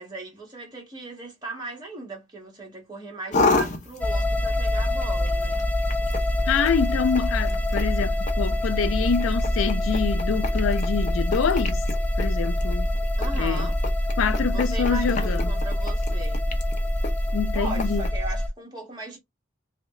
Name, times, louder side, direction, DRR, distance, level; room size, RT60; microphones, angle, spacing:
voice 1, 0.0-5.6 13.2-13.8 14.5-16.5 17.5-19.2, right 3 dB, 20° right, 1.5 m, -38 dB
sound 1, 3.3-18.1, left 3 dB, 35° left, 0.7 m, -33 dB
sound 2, 4.0-18.5, left 1 dB, 10° left, 0.3 m, -25 dB
voice 2, 6.5-11.8 12.2-12.9 13.3-13.7 14.2-15.5 17.3-18.1, left 6 dB, 85° left, 0.4 m, -26 dB
3.1 x 2.8 x 3.0 m
head